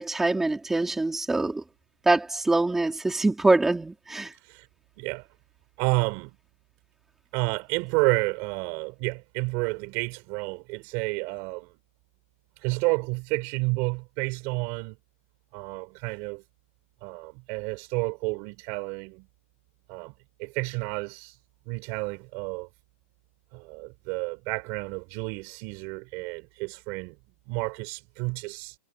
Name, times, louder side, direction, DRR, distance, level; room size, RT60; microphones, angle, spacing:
voice 1, 0.0-1.6 2.0-4.3, right 2 dB, 5° right, 3.1 m, -24 dB
voice 2, 4.3-4.7 5.0-5.3 5.8-6.4 7.3-11.7 12.6-15.0 15.5-16.4 17.0-19.3 19.9-20.1 20.4-21.4 21.7-22.7 23.5-27.2 27.5-28.8, right 28 dB, 30° right, 5.1 m, -30 dB
hypercardioid pair, 165°, 8 cm